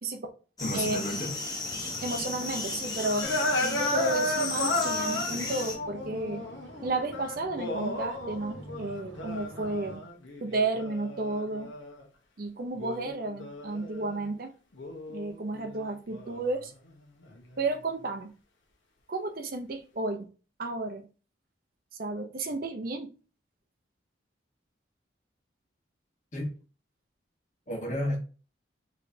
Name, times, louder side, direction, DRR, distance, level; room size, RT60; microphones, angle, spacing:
voice 1, 0.6-1.4 26.3-26.5 27.7-28.2, left 1 dB, 40° left, 1.2 m, -31 dB
sound 1, 0.6-5.7, left 3 dB, 20° left, 0.9 m, -34 dB
sound 2, 1.7-10.0, right 1 dB, 75° right, 1.2 m, -48 dB
voice 2, 1.8-3.3 3.6-6.5 6.8-10.0 10.4-11.7 12.4-14.5 15.1-16.7 17.6-18.3 19.1-20.3 20.6-21.1 21.9-23.1, right 2 dB, 50° right, 0.6 m, -32 dB
sound 3, 3.2-12.0 12.7-14.3 14.7-17.7, left 1 dB, 85° left, 1.1 m, -34 dB
4.5 x 3.2 x 2.7 m
head